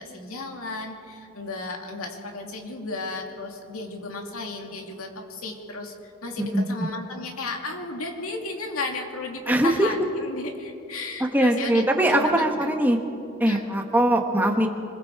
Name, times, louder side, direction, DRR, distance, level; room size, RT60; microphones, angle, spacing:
voice 1, 0.0-12.7 13.5-13.7, left 3 dB, 85° left, 2 dB, 2.5 m, -34 dB
voice 2, 6.4-6.7 9.5-9.9 11.3-13.0 13.4-14.7, right 1 dB, 10° right, 3 dB, 1.2 m, -21 dB
26.0 x 21.5 x 4.7 m, 2.5 s
head